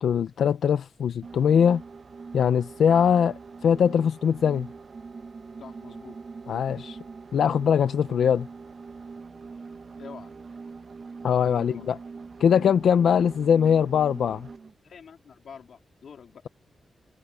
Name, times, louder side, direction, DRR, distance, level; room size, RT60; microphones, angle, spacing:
voice 1, 0.0-1.8 2.3-4.7 6.5-7.0 7.3-8.5 11.2-12.0 12.4-14.5, left 8 dB, 85° left, 0.6 m, -22 dB
sound 1, 1.2-14.7, right 4 dB, 40° right, 1.2 m, -42 dB
voice 2, 5.6-6.2 10.0-10.3 11.4-11.9 14.8-16.4, left 7 dB, 70° left, 2.9 m, -46 dB
wide cardioid pair, 150°, 0 cm